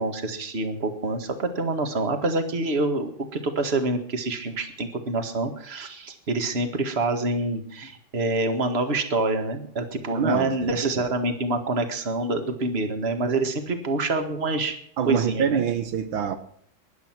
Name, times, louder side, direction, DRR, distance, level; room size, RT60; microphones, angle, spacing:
voice 1, 0.0-14.8 15.0-15.6, right 2 dB, 30° right, 1.9 m, -26 dB
voice 2, 10.1-10.5 10.8-10.9 15.0-16.4, right 8 dB, 80° right, 1.8 m, -25 dB
20.0 x 11.0 x 6.1 m
omnidirectional pair, 2.2 m